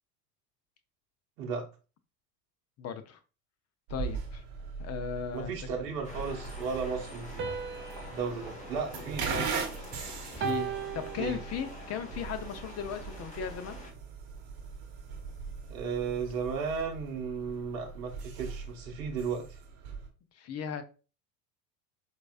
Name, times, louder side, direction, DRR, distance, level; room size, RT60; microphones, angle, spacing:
voice 1, 2.8-3.2 3.9-4.4 4.8-5.6 8.9-9.0 10.3-13.8 20.4-20.8, left 7 dB, 30° left, 9 dB, 0.6 m, -37 dB
sound 1, 3.9-20.1, right 5 dB, 50° right, 1.0 m, -41 dB
voice 2, 5.3-7.5 8.1-9.7 11.2-11.4 15.7-19.6, right 5 dB, 75° right, 2 dB, 0.9 m, -35 dB
sound 2, 6.0-13.9, left 1 dB, 15° left, 1.3 m, -46 dB
sound 3, 7.4-9.8 10.4-11.9, right 7 dB, 25° right, 0.6 m, -38 dB
4.5 x 2.7 x 2.3 m, 0.32 s
hypercardioid pair, 75°, 50 cm